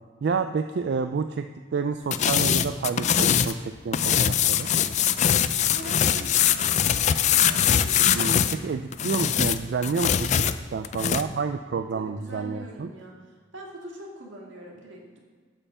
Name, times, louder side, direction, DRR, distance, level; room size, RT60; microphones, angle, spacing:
voice 1, 0.2-1.5 1.7-4.7 8.1-10.5 10.7-12.9, right 5 dB, 60° right, 8 dB, 0.3 m, -29 dB
sound 1, 2.1-3.6 3.9-8.6 8.9-11.2, left 9 dB, 40° left, 0.3 m, -22 dB
voice 2, 5.6-6.8 7.2-8.1 11.9-15.2, right 1 dB, 85° right, -1 dB, 2.0 m, -43 dB
8.3 x 5.6 x 7.2 m, 1.5 s
head